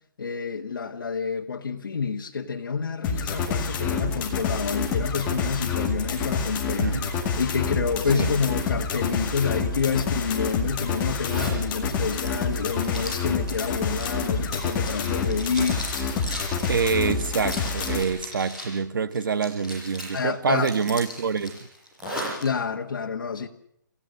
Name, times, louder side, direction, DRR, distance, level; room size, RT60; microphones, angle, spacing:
voice 1, 0.2-7.0 7.4-15.9 20.1-20.7 22.4-23.5, left 5 dB, 90° left, 1.8 m, -28 dB
sound 1, 3.0-18.0, left 5 dB, 15° left, 2.1 m, -28 dB
voice 2, 6.8-7.1 8.1-8.3 16.7-21.6, right 5 dB, 75° right, 1.5 m, -26 dB
Zipper (clothing), 11.2-11.6 12.0-18.8 19.1-20.2 20.6-22.4, equal, 5° right, 7.5 m, -37 dB
29.0 x 16.5 x 6.7 m
hypercardioid pair, 175°, 11 cm